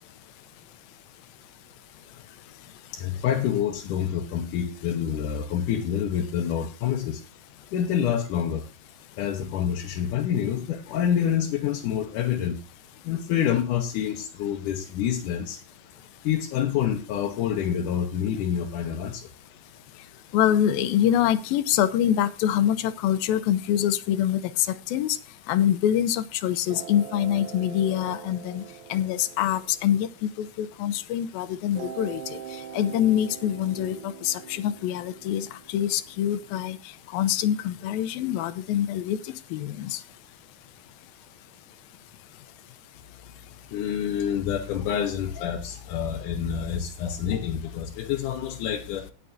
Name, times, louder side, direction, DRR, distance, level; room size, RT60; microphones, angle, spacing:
voice 1, 2.9-7.2 7.7-8.7 9.2-12.6 13.0-15.6 16.2-19.3 43.7-49.1, left 9 dB, 70° left, 2 dB, 2.4 m, -27 dB
voice 2, 20.3-25.2 25.5-28.6 28.9-32.4 32.7-36.8 37.1-39.2 39.5-40.0, left 11 dB, 90° left, 13 dB, 2.6 m, -25 dB
sound 1, 26.7-31.1 31.8-36.7, right 9 dB, 75° right, 2.6 m, -42 dB
19.0 x 6.8 x 2.7 m, 0.34 s
omnidirectional pair, 4.1 m